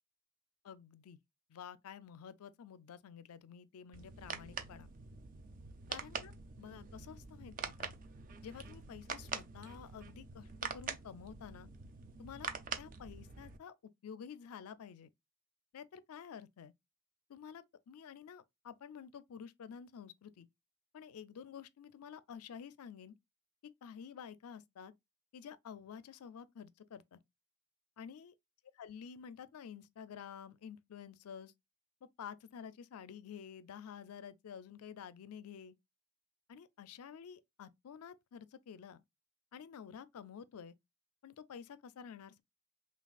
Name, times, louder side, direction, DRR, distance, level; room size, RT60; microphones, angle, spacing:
voice 1, 0.6-1.2 1.5-4.9 5.9-7.9 8.4-11.7 12.2-12.5 12.8-13.7 14.0-15.1 15.7-16.7 17.3-20.5 20.9-23.1 23.8-24.9 25.3-27.2 28.0-28.3 28.7-31.5 32.2-35.8 36.5-39.0 39.5-40.8 41.2-42.4, left 7 dB, 90° left, 0.4 m, -50 dB
sound 1, 3.9-13.6, right 5 dB, 40° right, 0.3 m, -45 dB
5.8 x 2.3 x 2.3 m
head